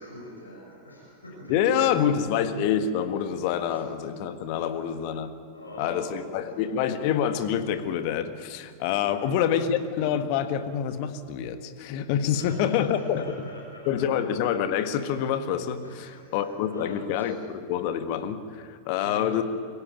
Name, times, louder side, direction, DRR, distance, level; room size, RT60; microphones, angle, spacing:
voice 1, 0.0-1.8 3.7-3.8 4.5-5.0 5.5-6.6 9.0-9.7 12.3-14.1 15.8-17.5 19.0-19.4, equal, 80° left, -2 dB, 5.6 m, -44 dB
voice 2, 1.5-5.3 5.8-13.4 13.9-19.4, left 9 dB, 45° left, 10 dB, 1.6 m, -27 dB
24.0 x 16.5 x 9.3 m, 2.4 s
figure-of-eight pair, 90°, 0 cm